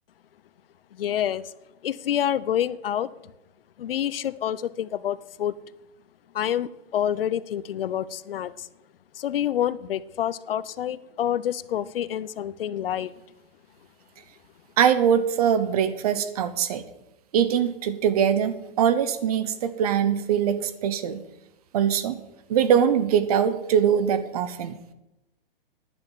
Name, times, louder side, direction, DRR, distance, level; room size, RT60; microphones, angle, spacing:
voice 1, 0.9-1.5 1.8-3.1 3.8-5.5 6.3-8.7 9.1-13.1, left 10 dB, 70° left, 18 dB, 0.7 m, -27 dB
voice 2, 14.8-16.8 17.3-21.2 21.7-22.1 22.5-24.8, right 8 dB, 40° right, 13 dB, 0.9 m, -22 dB
10.5 x 8.7 x 7.2 m, 0.93 s
hypercardioid pair, 160°, 29 cm